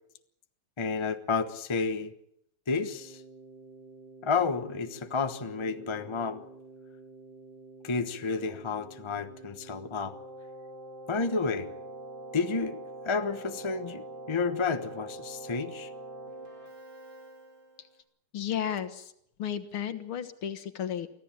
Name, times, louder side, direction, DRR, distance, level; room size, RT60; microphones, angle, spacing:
voice 1, 0.8-2.1 2.7-3.2 4.2-6.4 7.8-10.1 11.1-11.7 12.3-12.8 13.0-15.9, left 4 dB, 20° left, 9 dB, 0.8 m, -31 dB
Keyboard (musical), 2.9-17.9, right 2 dB, 60° right, 4.1 m, -46 dB
voice 2, 18.3-19.1 19.4-21.1, left 9 dB, 75° left, 11 dB, 2.2 m, -33 dB
24.5 x 15.0 x 9.0 m, 0.75 s
omnidirectional pair, 2.4 m